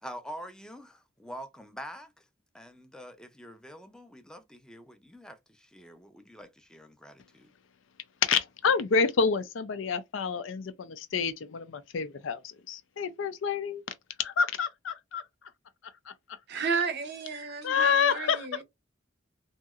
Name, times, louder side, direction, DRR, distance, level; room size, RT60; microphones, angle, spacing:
voice 1, 0.0-2.3 2.5-7.5, equal, 5° left, 0.4 m, -45 dB
voice 2, 8.2-13.8 14.2-15.3 16.1-16.7 17.6-18.6, left 6 dB, 80° left, 0.5 m, -28 dB
voice 3, 16.5-18.6, right 5 dB, 55° right, 0.6 m, -32 dB
2.9 x 2.7 x 2.4 m
head